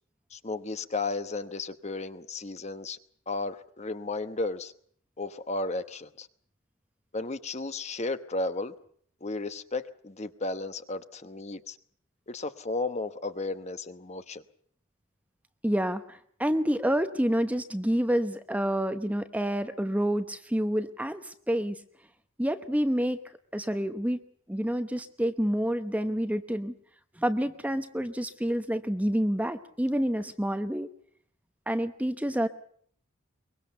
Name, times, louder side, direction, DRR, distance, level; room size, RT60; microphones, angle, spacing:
voice 1, 0.3-3.0 3.3-4.7 5.2-6.3 7.1-8.7 9.2-11.8 12.3-14.4, left 3 dB, 30° left, 11 dB, 1.0 m, -34 dB
voice 2, 15.6-21.8 22.4-23.2 23.5-24.2 24.5-26.7 27.2-30.9 31.7-32.5, equal, 5° right, 9 dB, 0.9 m, -28 dB
23.5 x 22.0 x 6.9 m, 0.62 s
head